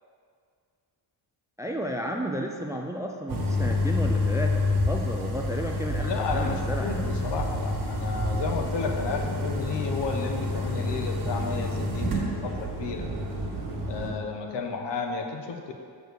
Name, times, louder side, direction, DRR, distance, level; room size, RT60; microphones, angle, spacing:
voice 1, 1.6-7.2, right 1 dB, 10° right, 2 dB, 0.3 m, -32 dB
sound 1, 3.3-14.1, left 2 dB, 45° right, 1.6 m, -28 dB
voice 2, 6.0-13.1 13.9-15.7, left 4 dB, 65° left, 3 dB, 0.9 m, -32 dB
6.5 x 4.6 x 6.6 m, 2.2 s
wide cardioid pair, 130°, 45 cm